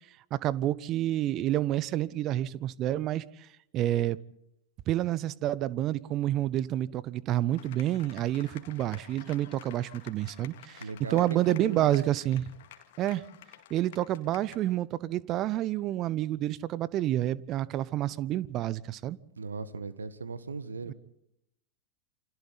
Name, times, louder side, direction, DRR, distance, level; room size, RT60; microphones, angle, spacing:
voice 1, 0.3-3.5 3.7-4.2 4.9-10.8 11.1-12.5 13.0-13.2 13.7-19.2 20.9-21.0, right 13 dB, 35° right, 0.7 m, -29 dB
sound 1, 7.5-14.8, left 11 dB, 55° left, 2.2 m, -51 dB
voice 2, 10.8-11.9 19.4-20.9, right 4 dB, 75° right, 1.5 m, -37 dB
28.5 x 26.0 x 4.1 m
figure-of-eight pair, 90°, 0 cm